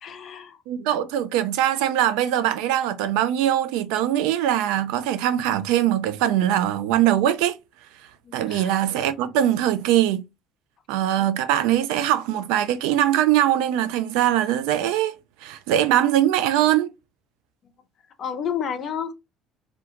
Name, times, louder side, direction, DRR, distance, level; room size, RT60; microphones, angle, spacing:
voice 1, 0.0-0.6 8.3-8.7 11.2-11.3 18.2-19.1, left 8 dB, 50° left, 0.5 m, -30 dB
voice 2, 0.7-7.6 8.3-10.2 10.9-15.1 15.4-16.9, right 12 dB, 70° right, 0.3 m, -22 dB
2.3 x 2.3 x 2.7 m
hypercardioid pair, 60°, 0 cm